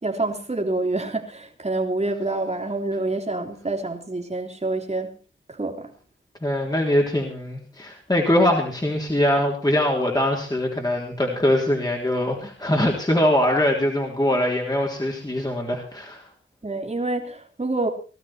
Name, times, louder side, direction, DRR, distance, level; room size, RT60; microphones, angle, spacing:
voice 1, 0.0-5.2 5.5-5.9 16.6-17.9, right 2 dB, 35° right, 3 dB, 3.3 m, -27 dB
voice 2, 6.4-16.2, left 1 dB, 20° left, 0 dB, 3.6 m, -22 dB
19.5 x 12.5 x 4.5 m, 0.38 s
wide cardioid pair, 55°, 20 cm